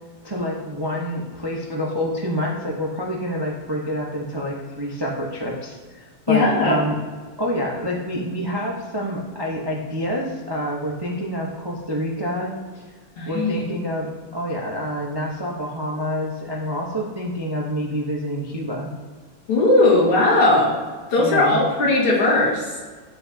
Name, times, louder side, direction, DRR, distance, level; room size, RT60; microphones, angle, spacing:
voice 1, 0.2-7.0 7.4-12.8 13.3-18.9 21.2-21.6, equal, 30° right, -3 dB, 0.4 m, -27 dB
voice 2, 6.3-6.8 13.2-13.6 19.5-20.8 21.1-22.6, left 2 dB, 85° left, -4 dB, 2.9 m, -18 dB
9.1 x 8.6 x 2.8 m, 1.5 s
omnidirectional pair, 2.4 m